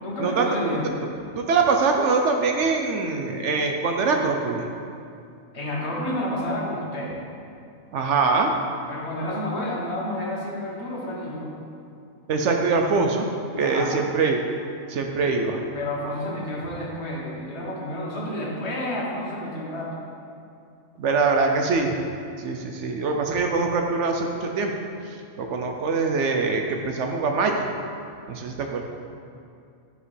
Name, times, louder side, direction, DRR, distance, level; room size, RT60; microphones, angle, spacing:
voice 1, 0.0-1.0 5.5-7.2 8.9-11.5 13.6-14.0 15.7-19.9, left 1 dB, 55° left, -4 dB, 1.4 m, -30 dB
voice 2, 1.4-4.6 7.9-8.5 12.3-13.3 13.6-14.4 14.9-15.6 21.0-21.9 22.4-24.7 25.4-27.7 28.3-28.8, right 4 dB, 70° right, 3 dB, 0.8 m, -23 dB
9.8 x 5.0 x 3.3 m, 2.5 s
omnidirectional pair, 1.4 m